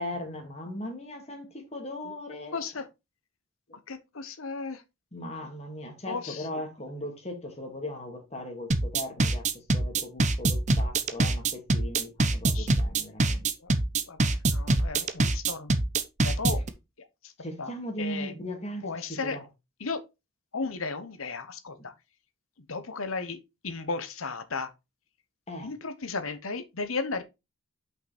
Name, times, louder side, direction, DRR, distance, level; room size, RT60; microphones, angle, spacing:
voice 1, 0.0-2.6 5.1-13.5 16.5-16.6 17.4-19.5 25.5-25.7, left 1 dB, 30° left, 2.3 m, -38 dB
voice 2, 2.5-2.8 3.9-4.8 6.1-6.4 12.5-12.7 14.1-14.2 14.5-15.7 16.2-16.6 17.6-17.7 18.0-18.3 18.8-19.4 19.8-20.0 20.5-21.9 22.7-23.4 23.6-24.7 25.6-27.2, left 4 dB, 70° left, 1.1 m, -34 dB
sound 1, 8.7-16.7, right 2 dB, 35° right, 0.8 m, -24 dB
5.9 x 5.6 x 4.2 m
head